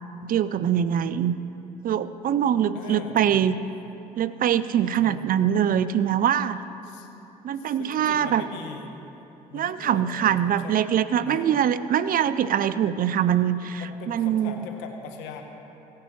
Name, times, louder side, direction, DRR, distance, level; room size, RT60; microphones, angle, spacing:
voice 1, 0.2-1.3 1.8-3.6 4.2-6.6 7.4-8.4 9.5-14.6, right 9 dB, 50° right, 14 dB, 0.5 m, -23 dB
voice 2, 2.7-3.4 4.9-5.2 6.8-7.1 7.6-8.9 9.5-10.7 11.2-11.5 13.8-15.4, left 6 dB, 80° left, 4 dB, 1.0 m, -41 dB
16.5 x 9.5 x 3.2 m, 3.0 s
hypercardioid pair, 60°, 18 cm